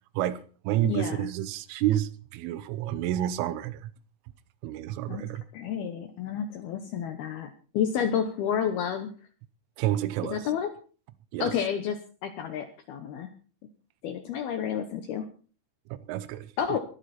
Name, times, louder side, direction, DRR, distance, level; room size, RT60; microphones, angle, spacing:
voice 1, 0.2-3.9 4.6-5.4 9.8-10.4 11.3-11.5 15.9-16.8, right 13 dB, 80° right, 3.3 m, -29 dB
voice 2, 0.8-1.3 5.1-5.2 5.5-9.1 10.2-10.7 11.4-13.3 14.0-15.2 16.6-16.8, left 8 dB, 75° left, 2.4 m, -30 dB
20.5 x 12.5 x 4.3 m
omnidirectional pair, 5.8 m